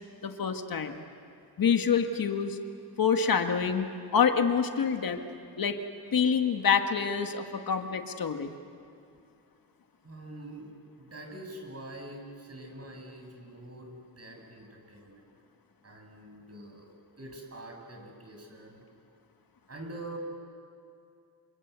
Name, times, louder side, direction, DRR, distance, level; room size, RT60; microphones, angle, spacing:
voice 1, 0.2-1.0 1.6-2.6 3.0-3.9 4.1-5.2 5.6-5.8 6.1-8.5, left 6 dB, 60° left, 6 dB, 1.7 m, -26 dB
voice 2, 10.0-10.7 11.0-15.2 15.8-16.9 17.2-18.8 19.7-20.2, right 1 dB, 40° right, 1 dB, 7.2 m, -45 dB
28.0 x 25.5 x 8.2 m, 2.5 s
cardioid pair, 90°, 39 cm